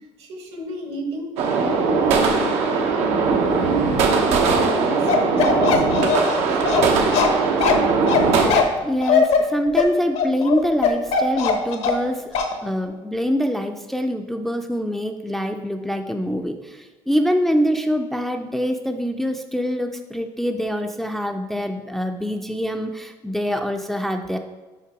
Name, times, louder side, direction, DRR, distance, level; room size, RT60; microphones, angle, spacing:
voice 1, 0.2-5.8 6.3-7.6, right 2 dB, 70° right, 3 dB, 1.3 m, -31 dB
sound 1, 1.4-8.5, right 4 dB, 90° right, 0.9 m, -20 dB
Bark, 5.1-12.1 12.3-12.5, left 6 dB, 70° left, 0.9 m, -20 dB
voice 2, 8.8-12.3 12.6-24.4, equal, ahead, 5 dB, 0.4 m, -24 dB
5.8 x 4.5 x 4.7 m, 1.3 s
cardioid pair, 125°, 11 cm